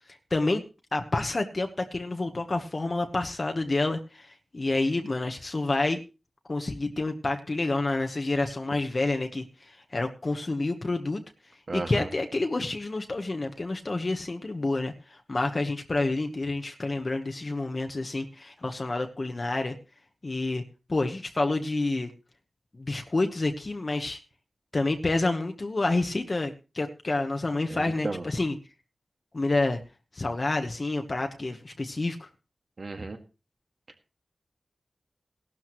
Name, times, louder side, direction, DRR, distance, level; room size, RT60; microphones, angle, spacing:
voice 1, 0.3-0.6 0.9-6.0 6.5-11.2 11.7-19.7 20.2-20.6 20.9-22.1 22.7-24.2 24.7-28.5 29.3-29.8 30.1-32.3, left 2 dB, 40° left, 4 dB, 1.1 m, -28 dB
voice 2, 11.7-12.1 27.7-28.3 32.8-33.2, right 3 dB, 55° right, 6 dB, 1.9 m, -34 dB
17.0 x 12.0 x 3.1 m, 0.30 s
wide cardioid pair, 85°, 0 cm